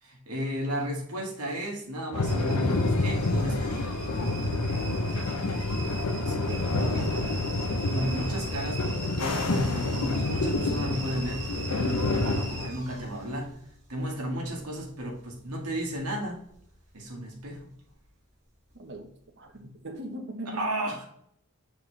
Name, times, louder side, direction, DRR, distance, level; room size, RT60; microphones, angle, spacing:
voice 1, 0.0-3.8 7.9-13.5 13.9-16.4 16.9-17.7 20.5-21.0, equal, 85° right, 1.8 m, -33 dB
sound 1, 2.1-12.7, left 2 dB, 85° left, 0.8 m, -28 dB
sound 2, 2.2-17.1 17.4-18.0 18.6-19.0 19.5-19.6, right 2 dB, 35° right, 2.6 m, -42 dB
voice 2, 6.1-7.1 18.7-20.7, right 1 dB, 55° right, 1.2 m, -41 dB
7.5 x 4.4 x 3.2 m
head